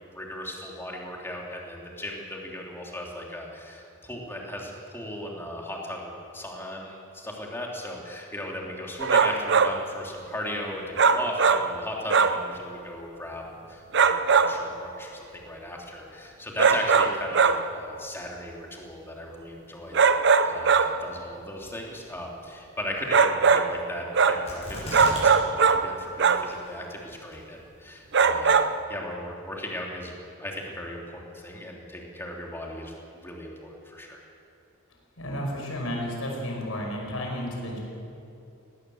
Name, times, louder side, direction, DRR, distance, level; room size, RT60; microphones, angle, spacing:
voice 1, 0.1-20.1 20.4-28.6 28.9-30.1 30.4-34.2, left 1 dB, 10° left, -1 dB, 3.0 m, -37 dB
sound 1, 9.0-9.8 11.0-11.8 12.1-12.5 13.9-14.7 16.6-17.7 19.9-21.0 23.1-23.8 24.1-24.5 24.9-25.9 26.2-26.5 28.1-28.8, right 5 dB, 50° right, 0.7 m, -21 dB
sound 2, 24.5-25.3 25.6-25.7 26.3-26.8 27.3-27.4, left 1 dB, 30° left, 7.0 m, -36 dB
voice 2, 35.2-37.8, equal, 70° left, 0 dB, 5.6 m, -32 dB
19.0 x 18.0 x 7.8 m, 2.6 s
head